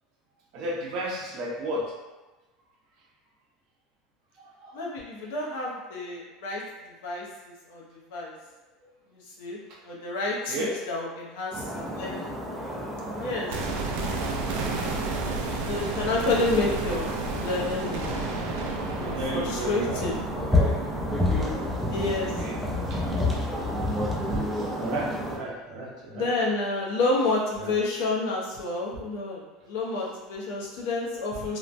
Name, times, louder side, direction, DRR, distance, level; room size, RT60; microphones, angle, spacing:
voice 1, 0.5-1.9 4.3-4.9 8.8-8.9 9.7-9.8 10.5-10.8 19.1-20.1 20.3-20.7 22.3-22.6 22.9-23.0 24.7-26.3 27.6-27.7 31.4-31.6, right 1 dB, 50° right, -3 dB, 0.7 m, -34 dB
voice 2, 4.7-6.6 6.9-7.8 8.1-8.3 9.1-9.6 9.8-12.3 13.2-13.6 15.7-18.4 18.9-20.2 21.9-22.3 26.1-31.6, left 2 dB, 75° left, -3 dB, 0.7 m, -29 dB
sound 1, 11.5-25.4, left 1 dB, 5° right, 0.4 m, -30 dB
sound 2, 13.5-23.5 23.8-23.9, right 3 dB, 80° right, 0.4 m, -33 dB
3.0 x 2.1 x 2.5 m, 1.2 s
supercardioid pair, 155°, 0 cm